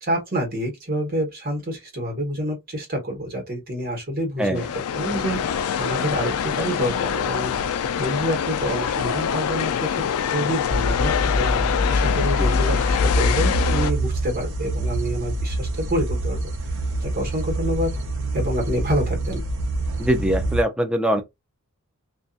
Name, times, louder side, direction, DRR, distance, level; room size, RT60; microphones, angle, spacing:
voice 1, 0.0-16.5 17.0-17.9 18.3-19.4, equal, 40° right, 1.2 m, -28 dB
voice 2, 4.4-4.7 20.0-21.2, equal, 5° right, 0.4 m, -22 dB
sound 1, 4.6-13.9, left 8 dB, 75° left, 0.3 m, -25 dB
sound 2, 10.7-20.6, equal, 60° right, 0.8 m, -25 dB
2.6 x 2.5 x 2.3 m
head